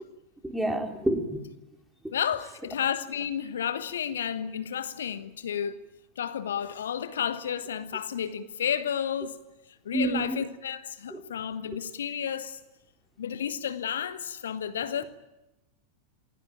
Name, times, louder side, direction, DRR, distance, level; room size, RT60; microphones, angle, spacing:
voice 1, 0.4-1.4 9.9-10.4 11.1-11.2, right 1 dB, 5° right, 3.4 m, -28 dB
voice 2, 2.1-5.8 6.2-9.4 9.8-12.6 13.2-15.0, left 8 dB, 65° left, 1.2 m, -31 dB
28.0 x 20.5 x 9.2 m
figure-of-eight pair, 90°, 0 cm